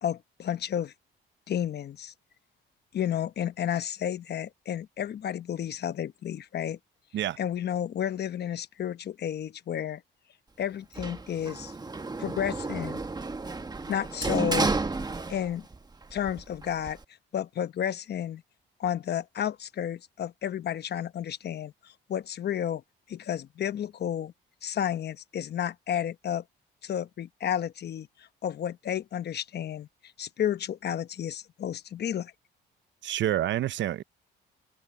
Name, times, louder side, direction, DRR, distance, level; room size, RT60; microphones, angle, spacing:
voice 1, 0.0-0.9 1.5-2.1 2.9-6.8 7.4-10.0 10.6-11.7 12.2-13.0 13.9-14.7 15.3-15.7 16.1-17.0 17.3-18.4 18.8-22.8 23.1-24.3 24.6-26.4 26.8-29.9 30.2-32.3, left 10 dB, 55° left, 1.0 m, -31 dB
Sliding door, 11.0-15.8 16.1-17.0, right 3 dB, 20° right, 1.3 m, -32 dB
voice 2, 33.0-34.0, right 12 dB, 65° right, 0.7 m, -28 dB
cardioid pair, 90°, 20 cm